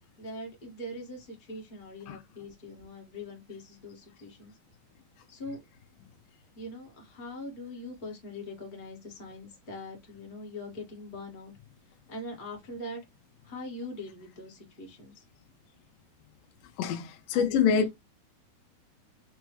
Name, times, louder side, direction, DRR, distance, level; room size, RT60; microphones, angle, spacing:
voice 1, 0.2-4.5 5.3-5.6 6.5-11.5 12.1-13.0 13.4-15.2 17.3-17.7, left 1 dB, 40° left, 0.6 m, -42 dB
voice 2, 16.8-18.0, left 7 dB, 75° left, 2.1 m, -26 dB
6.1 x 2.2 x 3.1 m
omnidirectional pair, 4.1 m